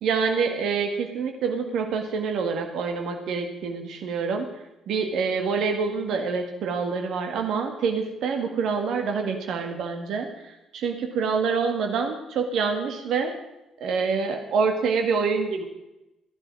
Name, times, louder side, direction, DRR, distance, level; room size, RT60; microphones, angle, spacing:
voice 1, 0.0-4.5 4.9-13.3 13.8-15.6, right 5 dB, 60° right, 4 dB, 1.9 m, -26 dB
15.5 x 11.0 x 6.1 m, 0.94 s
figure-of-eight pair, 45°, 0 cm